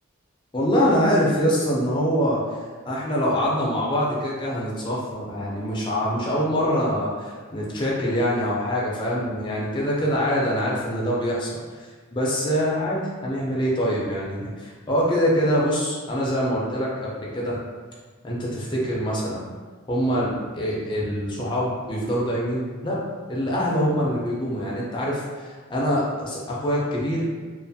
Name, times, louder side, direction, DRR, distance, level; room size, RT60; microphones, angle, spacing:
voice 1, 0.5-2.4 2.9-17.6 18.2-19.5 19.9-23.0 23.3-27.3, equal, 20° left, -5 dB, 0.5 m, -24 dB
2.5 x 2.4 x 2.6 m, 1.5 s
head